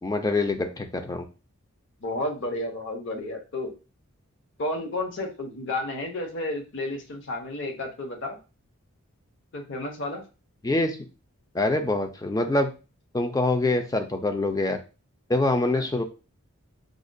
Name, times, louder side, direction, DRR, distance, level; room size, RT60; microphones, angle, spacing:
voice 1, 0.0-1.3 10.6-11.0 11.5-12.7 13.1-14.8 15.3-16.0, left 2 dB, 15° left, 6 dB, 0.3 m, -25 dB
voice 2, 2.0-3.7 4.6-8.4 9.5-10.2 15.7-15.8, left 2 dB, 55° left, 3 dB, 0.7 m, -32 dB
4.9 x 2.2 x 2.5 m, 0.31 s
head